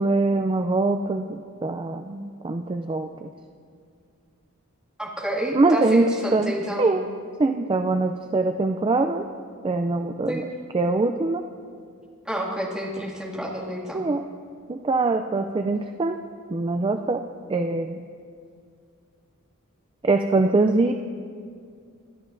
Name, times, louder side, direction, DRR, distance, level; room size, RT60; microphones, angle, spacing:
voice 1, 0.0-3.3 5.5-6.0 6.3-6.5 6.8-7.0 7.4-9.3 9.6-10.4 10.7-11.5 13.9-14.2 14.7-16.2 16.5-17.2 17.5-18.0 20.0-20.9, right 3 dB, 20° right, 6 dB, 0.3 m, -23 dB
voice 2, 5.0-6.9 10.3-10.4 12.3-14.0, right 1 dB, 5° right, -5 dB, 2.2 m, -29 dB
23.5 x 13.0 x 2.6 m, 2.2 s
head